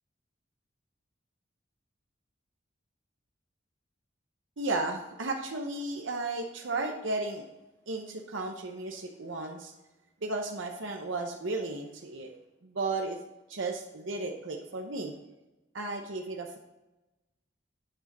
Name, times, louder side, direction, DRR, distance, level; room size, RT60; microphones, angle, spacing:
voice 1, 4.6-7.5 7.9-9.7 10.2-12.3 12.6-13.2 13.5-15.1 15.7-16.6, right 2 dB, 85° right, 2 dB, 0.9 m, -34 dB
8.9 x 6.5 x 4.0 m, 1.0 s
head